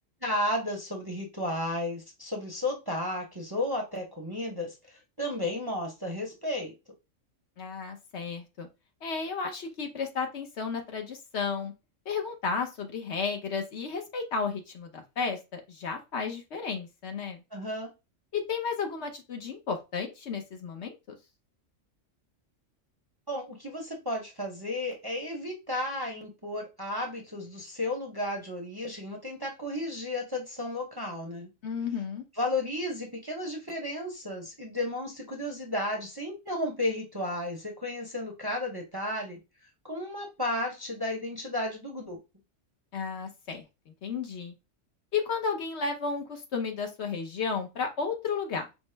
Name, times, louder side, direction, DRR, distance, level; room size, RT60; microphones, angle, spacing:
voice 1, 0.2-6.7 17.5-17.9 23.3-31.5 32.4-39.4 39.8-42.2, left 1 dB, 25° right, 1 dB, 0.7 m, -33 dB
voice 2, 7.6-8.7 9.0-11.7 12.1-17.4 18.3-21.2 31.6-32.2 42.9-44.5 45.1-48.7, left 5 dB, 60° left, 5 dB, 1.0 m, -33 dB
5.3 x 2.0 x 3.2 m, 0.26 s
omnidirectional pair, 1.3 m